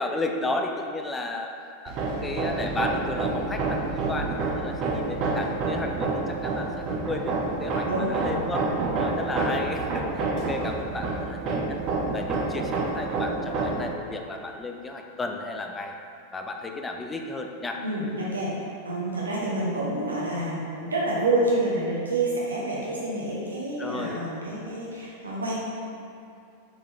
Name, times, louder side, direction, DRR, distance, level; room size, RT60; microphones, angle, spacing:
voice 1, 0.0-1.6 1.8-11.8 12.1-15.9 16.3-17.8 23.8-24.2, left 2 dB, 15° left, 3 dB, 0.4 m, -33 dB
Hammer, 1.9-13.9, right 3 dB, 35° right, 0.6 m, -28 dB
voice 2, 7.9-8.7 17.8-25.6, right 2 dB, 75° right, -5 dB, 0.7 m, -28 dB
4.7 x 3.7 x 2.7 m, 2.6 s
figure-of-eight pair, 90°, 0 cm